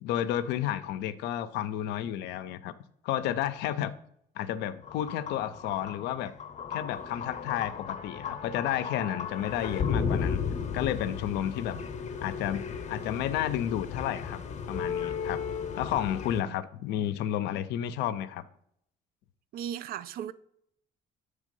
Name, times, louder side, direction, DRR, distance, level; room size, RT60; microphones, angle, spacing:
voice 1, 0.0-2.7 3.0-3.9 4.4-6.3 6.7-10.4 10.7-11.8 12.2-14.4 14.7-15.4 15.8-18.4, left 11 dB, 85° left, 0.5 m, -31 dB
sound 1, 4.8-16.4, left 6 dB, 45° left, 0.7 m, -35 dB
voice 2, 19.5-20.3, right 10 dB, 65° right, 0.4 m, -37 dB
7.4 x 3.4 x 5.2 m
cardioid pair, 110°, 17 cm